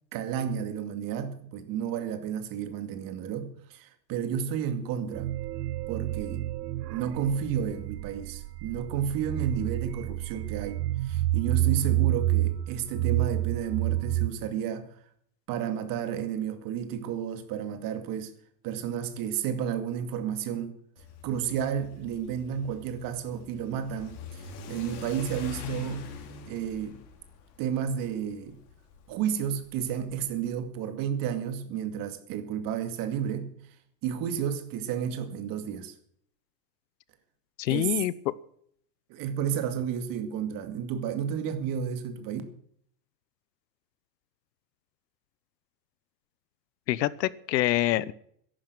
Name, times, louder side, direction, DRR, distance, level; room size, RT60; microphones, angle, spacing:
voice 1, 0.1-5.3 5.9-6.5 6.9-14.9 15.5-18.3 18.6-20.7 21.2-26.1 26.5-27.0 27.6-28.6 29.1-33.6 34.0-35.9 37.7-37.9 39.1-42.4, right 8 dB, 40° right, 2.3 m, -32 dB
sound 1, 5.1-14.3, right 15 dB, 75° right, 1.0 m, -29 dB
Car / Accelerating revving vroom, 21.0-30.4, left 2 dB, 60° left, 4.1 m, -43 dB
voice 2, 37.6-38.3 46.9-48.1, left 14 dB, 80° left, 1.0 m, -26 dB
13.5 x 11.5 x 6.2 m
supercardioid pair, 135°, 49 cm